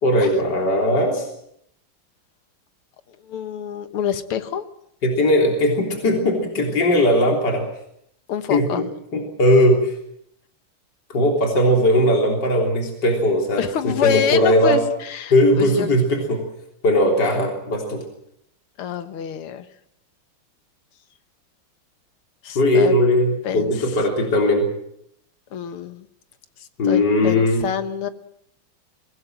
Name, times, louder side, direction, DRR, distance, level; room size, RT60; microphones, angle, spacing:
voice 1, 0.0-1.3 5.0-7.6 8.5-8.8 9.1-10.0 11.1-14.8 15.3-16.5 16.8-18.0 22.6-24.7 26.8-27.6, left 1 dB, 50° left, 1 dB, 4.0 m, -18 dB
voice 2, 3.2-4.7 8.3-8.8 13.5-15.9 18.8-19.7 22.4-22.9 23.4-23.7 25.5-26.1 26.6-28.1, left 8 dB, 85° left, 10 dB, 2.2 m, -26 dB
23.5 x 18.5 x 7.6 m, 0.74 s
omnidirectional pair, 2.3 m